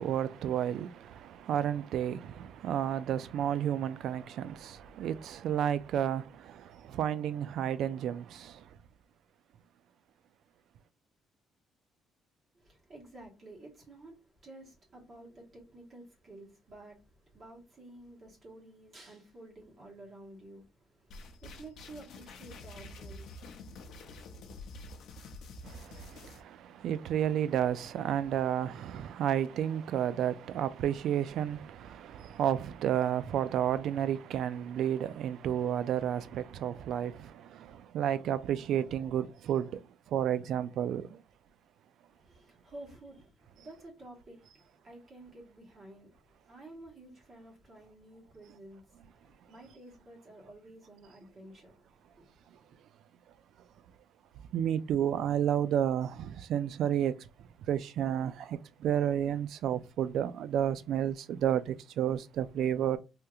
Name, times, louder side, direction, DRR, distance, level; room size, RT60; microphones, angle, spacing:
voice 1, 0.0-8.7 25.6-39.8 40.1-41.2 54.5-57.3 57.7-63.0, right 10 dB, 70° right, 0.3 m, -31 dB
voice 2, 12.5-24.2 42.1-52.8, right 2 dB, 35° right, 1.3 m, -52 dB
sound 1, 21.1-26.4, left 2 dB, 70° left, 0.5 m, -47 dB
3.5 x 2.8 x 2.3 m
cardioid pair, 130°, 0 cm